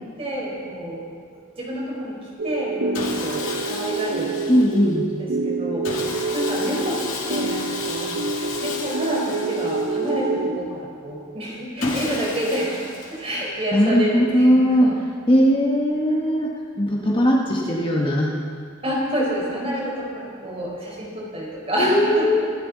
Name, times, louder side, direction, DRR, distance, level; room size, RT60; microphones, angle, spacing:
voice 1, 0.2-1.0 1.3-2.2 2.4-4.4 5.2-7.0 7.3-8.1 8.6-12.8 13.1-15.0 18.8-22.5, right 1 dB, 30° right, -4 dB, 4.3 m, -28 dB
sound 1, 2.4-10.6, right 3 dB, 80° right, 1.1 m, -27 dB
Sawing, 2.9-5.0 5.8-10.4 11.8-13.6, left 3 dB, 80° left, 2.3 m, -33 dB
voice 2, 4.5-5.1 11.8-12.1 13.7-15.0 15.3-18.3 21.8-22.5, equal, 25° left, -2 dB, 1.6 m, -19 dB
26.0 x 12.5 x 4.1 m, 2.1 s
head